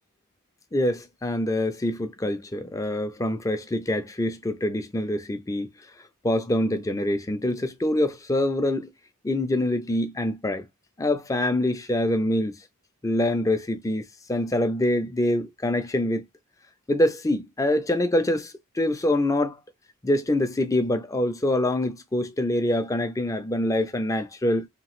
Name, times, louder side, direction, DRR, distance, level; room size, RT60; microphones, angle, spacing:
voice 1, 0.7-5.7 6.2-8.9 9.2-10.6 11.0-12.6 13.0-14.0 14.3-16.2 16.9-19.6 20.0-24.7, left 1 dB, 15° left, 0.4 m, -25 dB
2.9 x 2.3 x 3.0 m
head